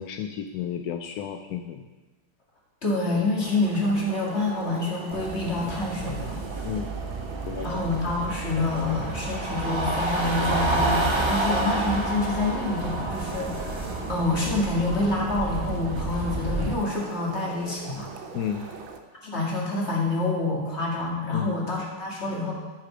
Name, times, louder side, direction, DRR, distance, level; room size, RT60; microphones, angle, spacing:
voice 1, 0.0-1.9 6.6-6.9 7.4-7.8 18.3-18.7 21.3-21.6, left 8 dB, 75° left, 5 dB, 0.9 m, -32 dB
voice 2, 2.8-6.4 7.6-18.1 19.2-22.5, left 2 dB, 35° left, -3 dB, 2.2 m, -27 dB
sound 1, 3.4-19.0, right 5 dB, 80° right, 1.6 m, -42 dB
sound 2, 5.1-16.7, right 2 dB, 40° right, 0.4 m, -29 dB
10.5 x 6.6 x 5.0 m, 1.3 s
omnidirectional pair, 2.1 m